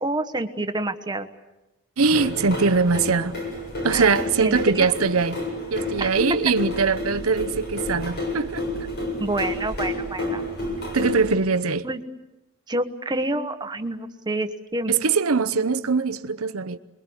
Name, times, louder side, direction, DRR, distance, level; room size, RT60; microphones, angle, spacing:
voice 1, 0.0-1.3 3.9-4.1 4.4-4.9 6.0-6.2 9.2-10.5 11.8-12.0 12.7-14.9, right 2 dB, 20° right, 1.4 m, -28 dB
voice 2, 2.0-3.3 3.8-5.4 5.7-8.6 10.9-11.9 14.9-16.8, right 4 dB, 85° right, 0.9 m, -22 dB
sound 1, 2.1-11.3, left 1 dB, 50° left, 7.0 m, -30 dB
27.5 x 22.5 x 8.1 m
head